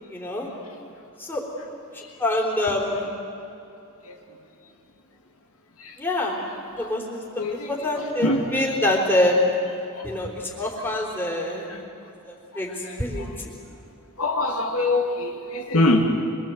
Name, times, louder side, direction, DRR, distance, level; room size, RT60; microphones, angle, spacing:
voice 1, 0.1-0.5 1.2-1.4 1.9-3.1 6.0-6.4 6.7-9.4 10.0-11.7 12.3-13.5, left 1 dB, 10° left, -3 dB, 3.9 m, -26 dB
voice 2, 7.4-7.7 8.2-8.4 9.9-10.0 11.7-11.8 12.9-13.0 14.2-16.1, left 2 dB, 75° left, 1 dB, 2.4 m, -23 dB
25.5 x 23.0 x 7.9 m, 2.7 s
head